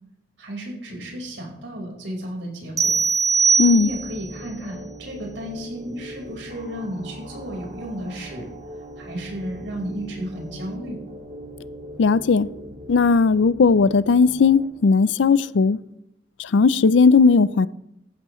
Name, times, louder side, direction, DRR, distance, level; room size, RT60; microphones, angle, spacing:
voice 1, 0.4-2.9 3.8-8.5 9.0-11.0, equal, 85° right, 4.4 m, -33 dB
sound 1, 2.8-4.3, right 5 dB, 20° right, 1.0 m, -20 dB
sound 2, 3.1-14.7, right 1 dB, 45° right, 2.1 m, -40 dB
voice 2, 3.6-3.9 12.0-12.5 12.9-15.8 16.4-17.7, left 4 dB, 85° left, 0.4 m, -17 dB
14.5 x 12.0 x 3.1 m
head